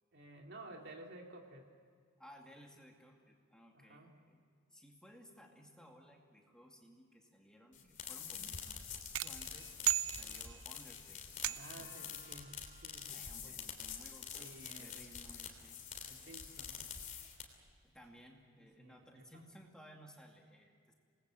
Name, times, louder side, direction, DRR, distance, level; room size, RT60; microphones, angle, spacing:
voice 1, 0.1-1.7 3.7-4.2 7.8-7.9 11.6-12.6 12.8-13.7 14.3-15.3 16.0-16.8 18.6-19.4, right 1 dB, 55° right, 2 dB, 2.9 m, -54 dB
voice 2, 2.2-4.4 4.7-12.2 13.1-14.5 14.8-15.8 17.9-20.9, equal, 5° left, 0 dB, 2.4 m, -59 dB
sound 1, 7.7-17.7, left 7 dB, 40° left, 3.1 m, -47 dB
sound 2, 9.1-10.8 11.4-12.0, right 15 dB, 90° right, 0.6 m, -36 dB
sound 3, 11.7-15.5 16.4-16.8 17.4-18.1 18.4-18.5 18.7-19.5, right 2 dB, 30° right, 6.4 m, -67 dB
26.5 x 20.5 x 7.8 m, 2.1 s
head